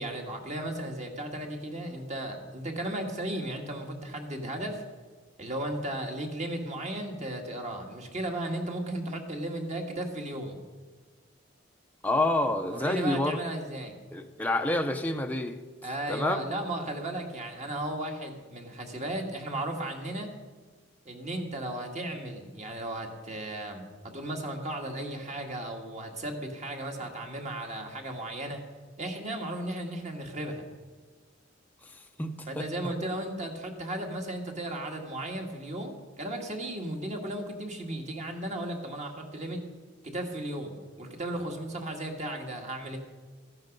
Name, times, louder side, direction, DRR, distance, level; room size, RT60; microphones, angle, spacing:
voice 1, 0.0-4.8 5.4-10.6 12.7-14.0 15.8-20.3 21.1-28.6 29.0-30.7 32.5-39.6 40.0-43.0, right 1 dB, 40° right, 2 dB, 1.8 m, -35 dB
voice 2, 12.0-13.4 14.1-15.6 16.1-16.4 32.2-32.7, left 2 dB, 10° left, 4 dB, 0.6 m, -28 dB
14.5 x 11.0 x 5.3 m, 1.4 s
head